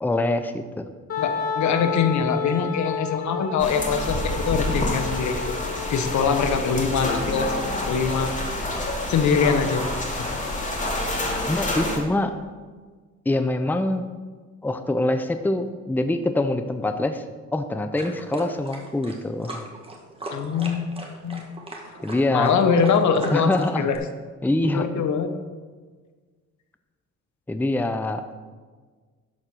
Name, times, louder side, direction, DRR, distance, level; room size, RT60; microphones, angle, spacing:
voice 1, 0.0-0.9 11.4-12.3 13.3-14.0 14.6-17.2 17.5-19.6 22.0-22.5 23.3-23.9 24.4-24.9 27.5-28.3, left 2 dB, 5° left, 8 dB, 0.6 m, -24 dB
Wind instrument woodwind instrument, 1.1-6.7, left 6 dB, 50° left, 1.7 m, -31 dB
voice 2, 1.2-5.3 5.9-8.3 9.1-9.8 20.3-20.9 21.2-21.5 22.3-24.0 24.7-25.3, left 6 dB, 70° left, 8 dB, 1.1 m, -23 dB
sound 1, 3.6-12.0, left 1 dB, 25° left, 2.3 m, -28 dB
sound 2, 18.0-24.0, right 2 dB, 20° right, 1.8 m, -37 dB
12.0 x 4.3 x 6.3 m, 1.4 s
cardioid pair, 90°, 30 cm